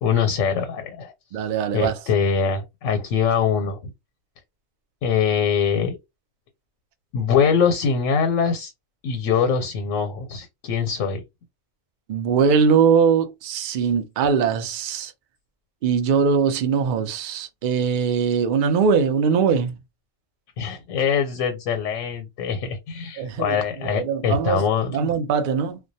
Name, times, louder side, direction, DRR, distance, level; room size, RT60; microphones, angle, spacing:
voice 1, 0.0-1.1 1.7-3.9 5.0-6.0 7.1-8.7 9.0-11.2 20.6-25.1, left 6 dB, 90° left, 1.0 m, -23 dB
voice 2, 1.3-2.0 12.1-15.1 15.8-19.7 23.2-24.6 24.9-25.8, right 6 dB, 65° right, 0.5 m, -21 dB
2.2 x 2.1 x 2.6 m
omnidirectional pair, 1.3 m